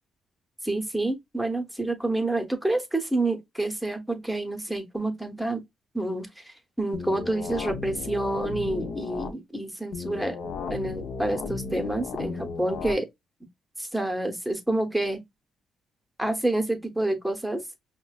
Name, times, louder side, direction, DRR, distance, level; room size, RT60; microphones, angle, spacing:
voice 1, 0.6-5.6 5.9-10.4 10.7-13.1 13.8-15.2 16.2-17.6, right 2 dB, ahead, 0.9 m, -28 dB
sound 1, 6.9-9.3 9.9-12.9, left 4 dB, 65° left, 0.7 m, -34 dB
5.3 x 2.2 x 2.3 m
cardioid pair, 90°, 0 cm